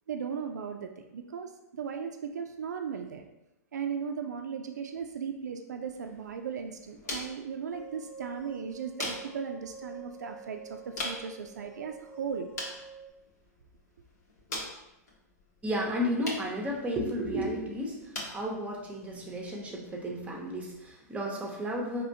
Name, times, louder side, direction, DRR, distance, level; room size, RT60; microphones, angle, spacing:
voice 1, 0.1-3.2 3.7-12.5, right 6 dB, 80° right, 5 dB, 0.4 m, -37 dB
sound 1, 5.8-20.9, left 2 dB, 75° left, 1.3 m, -44 dB
sound 2, 7.7-13.1, right 5 dB, 30° left, 1.0 m, -47 dB
voice 2, 15.6-22.0, equal, 15° right, -1 dB, 0.7 m, -33 dB
4.2 x 3.0 x 2.7 m, 0.92 s
hypercardioid pair, 115°, 9 cm